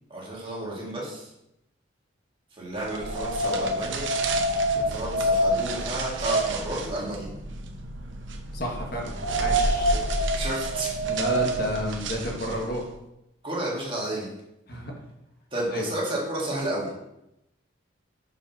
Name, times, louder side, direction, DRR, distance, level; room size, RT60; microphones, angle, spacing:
voice 1, 0.1-1.3 2.6-4.1 4.9-7.3 9.9-10.0 10.3-10.9 13.4-14.3 15.5-16.9, right 1 dB, 25° right, -4 dB, 1.9 m, -31 dB
sound 1, 2.8-12.8, right 1 dB, 75° right, 0.8 m, -27 dB
voice 2, 8.5-9.9 11.1-12.8 14.7-14.9 15.7-15.8, left 1 dB, 50° left, 0 dB, 1.4 m, -31 dB
5.6 x 5.0 x 5.8 m, 0.87 s
head